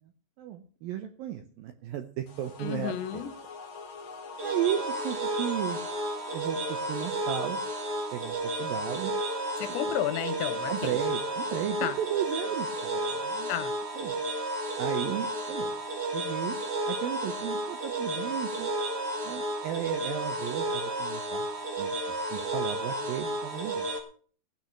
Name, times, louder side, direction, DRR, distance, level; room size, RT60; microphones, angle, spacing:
voice 1, 0.4-3.2 4.4-5.8 6.3-7.6 8.1-9.1 10.7-13.5 14.0-14.1 14.8-15.7 16.1-16.6 16.9-18.7 19.2-21.5 21.8-22.0 22.3-23.9, right 11 dB, 80° right, 2.1 m, -34 dB
sound 1, 2.3-8.3, left 4 dB, 60° left, 1.2 m, -45 dB
voice 2, 2.6-3.3 9.6-11.0 11.8-11.9 13.5-13.7, left 11 dB, 80° left, 3.3 m, -32 dB
sound 2, 4.4-24.0, right 1 dB, 50° right, 1.2 m, -32 dB
16.0 x 6.0 x 7.8 m
omnidirectional pair, 5.3 m